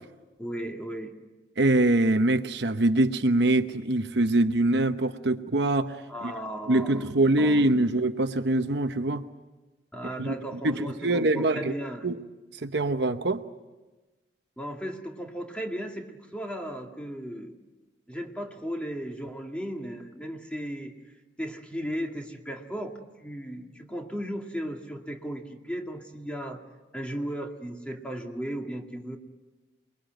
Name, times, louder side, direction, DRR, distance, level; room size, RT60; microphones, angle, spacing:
voice 1, 0.4-1.2 6.1-7.1 7.4-7.6 9.9-12.1 14.6-17.6 18.1-20.9 21.4-22.9 23.2-26.6 26.9-29.2, equal, 5° left, 2 dB, 2.2 m, -36 dB
voice 2, 1.6-6.0 6.2-6.3 6.7-9.3 10.2-10.3 10.6-11.7 12.0-12.2 12.6-13.4, right 2 dB, 65° right, 8 dB, 1.0 m, -24 dB
28.5 x 21.5 x 9.1 m, 1.2 s
head